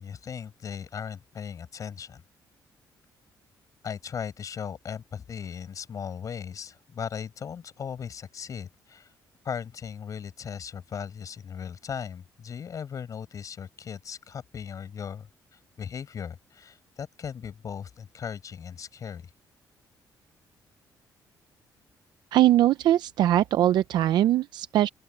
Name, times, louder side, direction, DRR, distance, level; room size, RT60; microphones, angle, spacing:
voice 1, 0.0-2.2 3.8-9.1 9.4-19.3, left 7 dB, 50° left, 6.8 m, -38 dB
voice 2, 22.3-24.9, right 13 dB, 75° right, 0.5 m, -21 dB
open air
cardioid pair, 110°, 7 cm